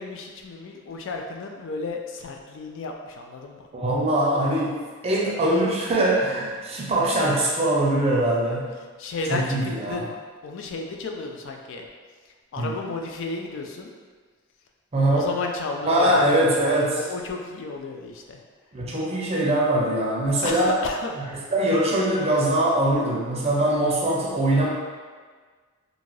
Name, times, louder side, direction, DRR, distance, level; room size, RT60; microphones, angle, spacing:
voice 1, 0.0-3.6 9.0-10.1 10.4-11.9 12.5-13.9 15.1-18.4 20.4-21.1, left 3 dB, 60° left, 2 dB, 0.3 m, -33 dB
voice 2, 3.7-4.8 5.0-8.7 9.3-10.0 12.6-12.8 14.9-15.3 15.8-17.0 18.7-20.7 21.5-24.7, right 1 dB, 30° right, -4 dB, 0.5 m, -22 dB
2.6 x 2.4 x 3.1 m, 1.5 s
head